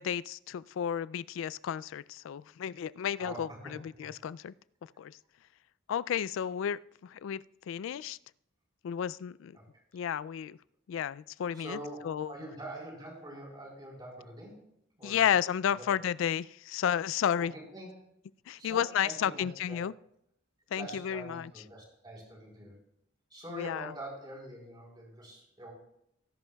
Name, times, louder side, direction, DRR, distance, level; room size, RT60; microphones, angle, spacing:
voice 1, 0.0-4.5 5.0-5.2 5.9-8.2 8.8-9.6 9.9-10.6 10.9-11.8 12.0-12.3 15.0-17.5 18.5-19.9 20.7-21.5 23.5-23.9, left 9 dB, 75° left, 20 dB, 0.3 m, -32 dB
voice 2, 3.2-3.7 4.0-4.2 9.5-9.7 9.9-10.0 11.5-14.6 14.9-15.2 15.7-15.9 17.4-17.9 18.6-19.8 20.7-22.7 23.3-25.7, right 1 dB, 20° right, -2 dB, 4.0 m, -45 dB
19.5 x 11.0 x 2.3 m, 0.76 s
head